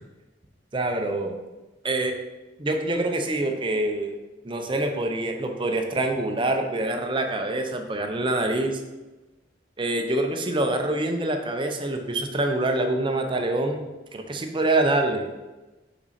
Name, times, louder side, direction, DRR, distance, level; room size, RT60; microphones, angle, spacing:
voice 1, 0.7-1.4 1.8-2.1 2.6-4.2 4.4-8.8 9.8-15.3, right 2 dB, 25° right, 4 dB, 0.7 m, -25 dB
6.0 x 5.2 x 4.2 m, 1.1 s
head